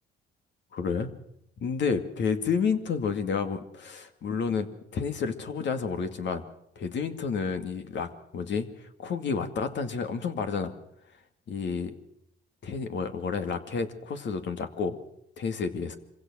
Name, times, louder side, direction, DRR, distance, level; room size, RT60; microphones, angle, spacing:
voice 1, 0.7-1.1 1.6-4.7 4.9-6.4 6.8-8.7 9.0-10.7 11.5-11.9 12.6-15.0 15.4-16.0, left 5 dB, 65° left, 7 dB, 2.4 m, -30 dB
25.5 x 16.5 x 6.4 m, 0.78 s
cardioid pair, 90°, 20 cm